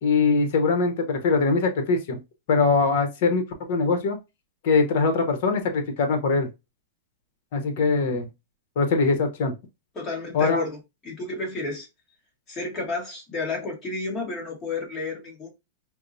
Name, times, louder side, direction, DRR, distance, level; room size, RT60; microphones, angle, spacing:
voice 1, 0.0-2.2 2.5-3.4 3.7-4.2 4.6-6.5 7.5-8.3 8.8-9.5 10.3-10.6, left 4 dB, 55° left, 0.9 m, -22 dB
voice 2, 9.9-10.8 11.0-11.9 12.5-15.5, left 3 dB, 20° left, 1.2 m, -31 dB
4.2 x 2.0 x 2.6 m
supercardioid pair, 150°, 0 cm